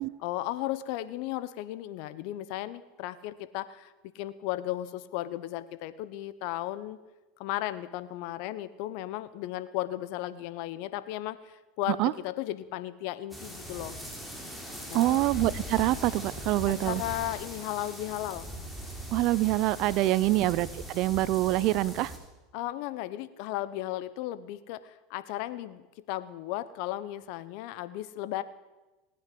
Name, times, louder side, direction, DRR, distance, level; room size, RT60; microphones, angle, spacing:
voice 1, 0.2-7.0 7.4-14.0 14.9-15.2 16.8-18.5 20.2-20.5 22.5-28.4, left 14 dB, 65° left, 15 dB, 1.0 m, -35 dB
sound 1, 13.3-22.2, equal, ahead, 4.0 m, -40 dB
voice 2, 14.9-17.0 19.1-22.1, right 16 dB, 55° right, 19 dB, 0.6 m, -25 dB
18.5 x 9.6 x 7.7 m, 1.1 s
hypercardioid pair, 90°, 0 cm